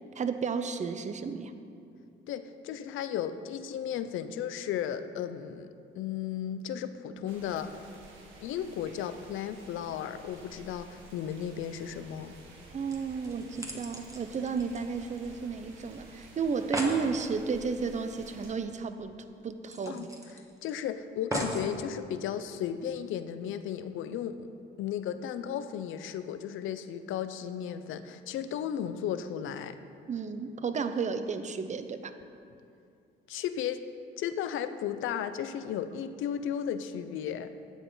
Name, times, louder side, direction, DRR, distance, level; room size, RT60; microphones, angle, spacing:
voice 1, 0.2-1.5 12.7-19.2 19.4-20.1 30.1-32.1, right 5 dB, 35° right, 10 dB, 0.6 m, -32 dB
voice 2, 2.3-7.8 8.4-12.3 19.9-20.1 20.6-24.5 24.8-29.8 33.3-33.8 34.2-37.5, left 9 dB, 80° left, 11 dB, 0.6 m, -35 dB
sound 1, 7.2-18.5, right 2 dB, 85° right, 1.6 m, -52 dB
sound 2, 12.9-15.5 15.8-15.9 16.2-16.3 16.5-17.0 18.5-18.6 19.0-19.1 19.7-20.7 21.3-21.7 22.4-22.5, right 1 dB, 15° right, 1.4 m, -37 dB
12.0 x 8.2 x 3.9 m, 2.5 s
cardioid pair, 90°, 20 cm